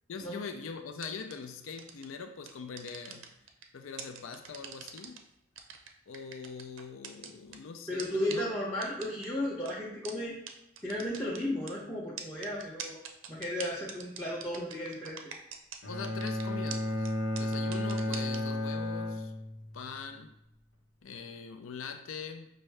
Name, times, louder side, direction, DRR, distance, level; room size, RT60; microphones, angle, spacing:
voice 1, 0.1-3.3 3.7-5.2 6.1-8.4 15.9-17.1 17.4-19.3 19.7-20.3 21.0-22.5, left 5 dB, 85° left, 6 dB, 0.4 m, -42 dB
sound 1, 1.0-1.3 1.8-2.0 2.4-3.6 4.0-5.2 5.6-7.6 8.0-8.1 8.3-8.4 8.8-9.3 9.6-9.7 10.0-10.1 10.5-10.6 10.8-11.7 12.2-15.8 16.0-16.4 16.7-16.8 17.0-17.1 17.4-18.4, right 8 dB, 85° right, 0.5 m, -42 dB
voice 2, 7.9-10.4 10.8-13.0 13.3-15.2, left 1 dB, 10° left, -7 dB, 0.6 m, -34 dB
Bowed string instrument, 15.8-19.9, left 1 dB, 65° left, 0.9 m, -33 dB
5.5 x 2.6 x 3.2 m, 0.85 s
head